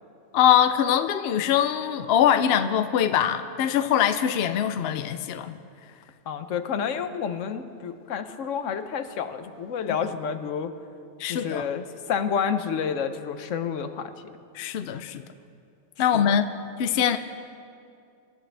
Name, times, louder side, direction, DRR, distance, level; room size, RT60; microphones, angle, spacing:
voice 1, 0.3-5.6 11.2-11.7 14.5-15.2 16.0-16.5 16.8-17.2, left 9 dB, 65° left, 10 dB, 0.8 m, -22 dB
voice 2, 6.3-10.7 11.2-14.1 16.1-16.2, left 7 dB, 80° left, 9 dB, 1.1 m, -29 dB
25.5 x 11.5 x 3.4 m, 2.4 s
omnidirectional pair, 1.3 m